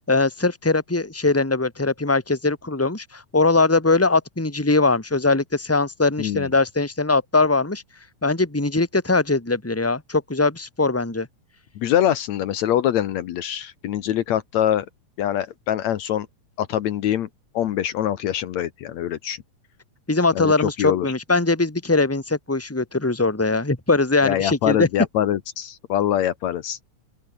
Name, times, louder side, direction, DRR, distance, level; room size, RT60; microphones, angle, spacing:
voice 1, 0.1-7.8 8.2-11.3 20.1-24.9, left 3 dB, 5° left, 2.5 m, -21 dB
voice 2, 6.2-6.5 11.8-14.9 15.2-16.3 16.6-17.3 17.5-19.4 20.4-21.1 24.2-26.8, left 11 dB, 70° left, 2.3 m, -24 dB
open air
omnidirectional pair, 3.4 m